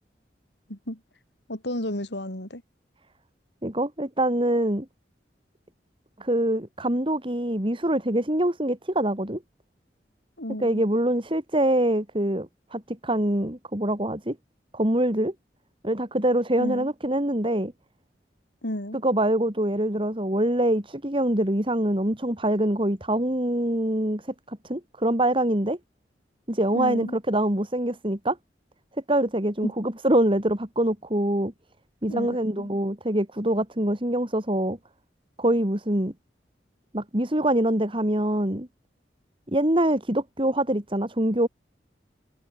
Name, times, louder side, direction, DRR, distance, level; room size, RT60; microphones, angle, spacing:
voice 1, 0.7-1.0 1.5-2.6 10.4-10.8 16.6-16.9 18.6-19.0 26.7-27.2 29.6-29.7 32.1-32.7, left 1 dB, 80° left, 6.0 m, -32 dB
voice 2, 3.6-4.9 6.2-9.4 10.6-14.4 14.7-15.3 15.8-17.7 19.0-24.2 24.5-25.8 26.5-28.4 29.1-31.5 32.0-34.8 35.4-36.1 36.9-38.7 39.5-41.5, right 1 dB, 30° right, 3.6 m, -24 dB
head